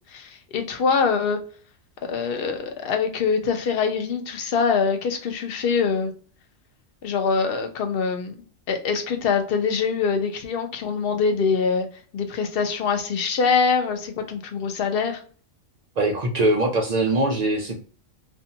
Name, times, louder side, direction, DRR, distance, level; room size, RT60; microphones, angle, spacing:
voice 1, 0.1-1.4 2.1-6.1 7.0-8.3 8.7-11.9 12.1-15.2, left 5 dB, 55° left, 5 dB, 0.7 m, -24 dB
voice 2, 16.0-17.8, right 2 dB, 65° right, 1 dB, 0.4 m, -22 dB
2.6 x 2.3 x 2.7 m, 0.42 s
omnidirectional pair, 1.4 m